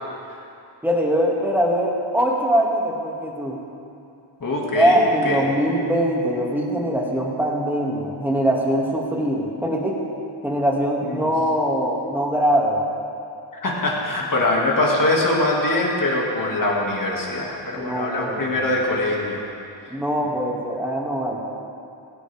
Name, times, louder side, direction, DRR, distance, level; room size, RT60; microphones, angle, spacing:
voice 1, 0.8-3.6 4.7-10.0 10.4-12.8 17.8-18.6 19.9-21.4, equal, 5° right, -2 dB, 2.4 m, -22 dB
voice 2, 4.4-5.0 5.2-5.4 11.0-11.3 13.6-19.4, left 2 dB, 40° left, -3 dB, 2.4 m, -22 dB
16.5 x 16.0 x 3.6 m, 2.6 s
wide cardioid pair, 100°, 48 cm